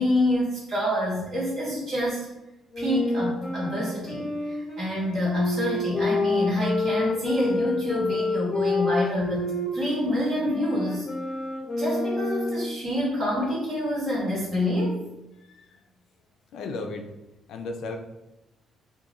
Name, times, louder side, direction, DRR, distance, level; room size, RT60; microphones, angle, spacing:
voice 1, 0.0-2.3 2.8-11.1 11.8-15.0, left 1 dB, 45° right, -5 dB, 1.1 m, -27 dB
Wind instrument woodwind instrument, 2.7-12.8, left 2 dB, 25° left, 0.6 m, -28 dB
voice 2, 16.5-17.1 17.5-18.0, left 3 dB, 70° left, 3 dB, 0.3 m, -34 dB
2.4 x 2.2 x 2.9 m, 0.97 s
cardioid pair, 170°, 0 cm